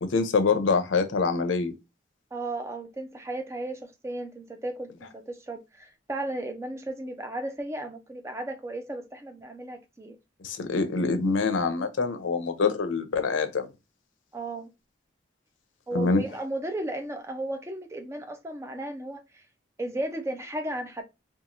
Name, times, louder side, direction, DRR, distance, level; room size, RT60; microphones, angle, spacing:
voice 1, 0.0-1.7 10.4-13.7 15.9-16.2, left 4 dB, 85° left, 0.5 m, -25 dB
voice 2, 2.3-10.2 14.3-14.7 15.9-19.4 19.8-21.0, right 1 dB, 15° right, 0.4 m, -35 dB
2.9 x 2.3 x 2.5 m
head